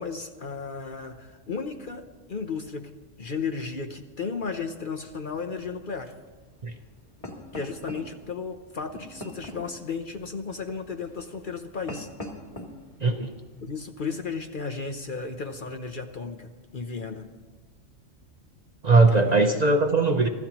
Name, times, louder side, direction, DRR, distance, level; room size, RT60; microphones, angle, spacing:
voice 1, 0.0-2.9 3.2-6.1 7.5-12.1 13.6-17.3 18.9-19.5, left 5 dB, 45° left, 6 dB, 0.8 m, -34 dB
sound 1, 5.2-13.8, left 1 dB, 25° left, 2.1 m, -44 dB
voice 2, 13.0-13.3 18.8-20.3, right 3 dB, 40° right, 5 dB, 0.8 m, -20 dB
25.0 x 14.0 x 3.0 m, 1.3 s
omnidirectional pair, 1.3 m